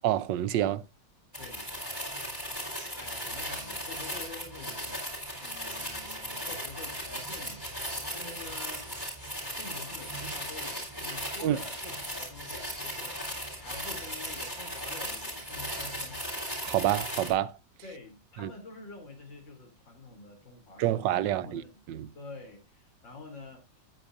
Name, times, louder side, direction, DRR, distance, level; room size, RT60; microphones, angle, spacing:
voice 1, 0.0-0.8 11.4-11.6 16.6-17.6 18.4-18.5 20.8-21.6 21.9-22.1, right 12 dB, 75° right, 1.3 m, -27 dB
sound 1, 1.3-17.3, equal, 10° left, 3.9 m, -37 dB
voice 2, 1.4-1.7 2.6-5.0 5.4-8.9 9.6-16.4 17.8-21.8 22.2-23.7, left 3 dB, 80° left, 3.7 m, -47 dB
13.5 x 8.8 x 2.5 m
omnidirectional pair, 2.0 m